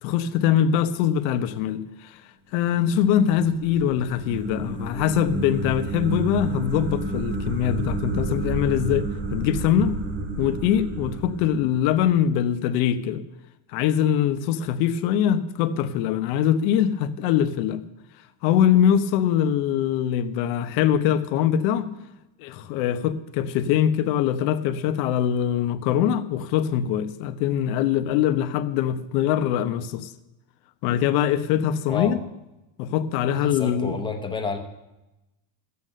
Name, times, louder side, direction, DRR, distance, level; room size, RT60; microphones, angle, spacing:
voice 1, 0.0-2.2 2.5-9.1 9.3-9.9 10.4-13.2 13.7-17.8 18.4-21.9 22.4-30.1 30.8-32.2 32.8-34.0, left 9 dB, 85° left, 1.1 m, -23 dB
sound 1, 3.0-12.2, right 2 dB, 25° right, 1.3 m, -30 dB
voice 2, 31.9-32.2 33.3-34.6, left 5 dB, 10° left, 0.8 m, -30 dB
13.5 x 8.3 x 6.7 m
cardioid pair, 175°, 50 cm